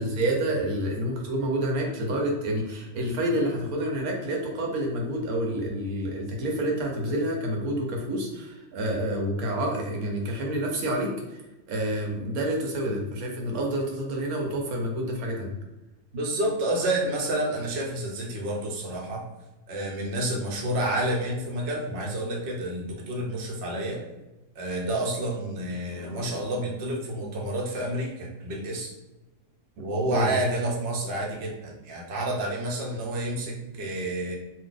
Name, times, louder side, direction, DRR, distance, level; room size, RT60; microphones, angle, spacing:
voice 1, 0.0-11.4 11.7-15.5 30.1-30.3, right 1 dB, 75° right, 0 dB, 1.1 m, -28 dB
voice 2, 16.1-19.2 19.7-24.0 24.6-28.9 29.8-34.4, right 1 dB, 55° right, -1 dB, 0.8 m, -29 dB
2.7 x 2.2 x 3.8 m, 1.0 s
omnidirectional pair, 1.6 m